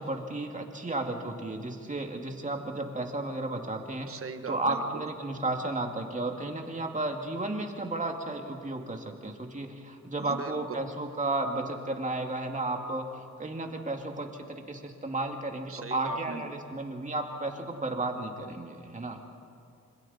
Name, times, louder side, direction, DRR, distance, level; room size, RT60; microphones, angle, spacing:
voice 1, 0.0-4.1 4.5-13.0 13.4-19.2, right 2 dB, 25° right, 2 dB, 2.4 m, -33 dB
voice 2, 4.1-5.1 10.2-10.6 15.7-16.5, right 5 dB, 50° right, 8 dB, 1.4 m, -39 dB
27.0 x 25.5 x 4.3 m, 2.6 s
wide cardioid pair, 115°, 29 cm